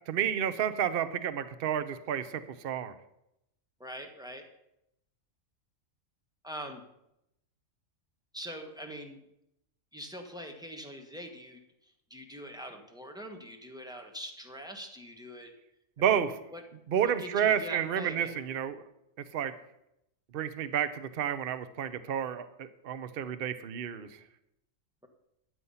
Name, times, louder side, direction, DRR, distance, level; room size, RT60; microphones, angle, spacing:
voice 1, 0.1-2.9 16.0-16.3 16.9-18.8 19.3-19.5 20.3-24.1, right 9 dB, 50° right, 12 dB, 0.8 m, -30 dB
voice 2, 3.8-4.5 6.4-6.8 8.3-9.2 9.9-15.5 16.0-16.6 17.0-18.4, equal, 5° right, 3 dB, 1.4 m, -43 dB
12.5 x 8.3 x 5.7 m, 0.82 s
omnidirectional pair, 1.4 m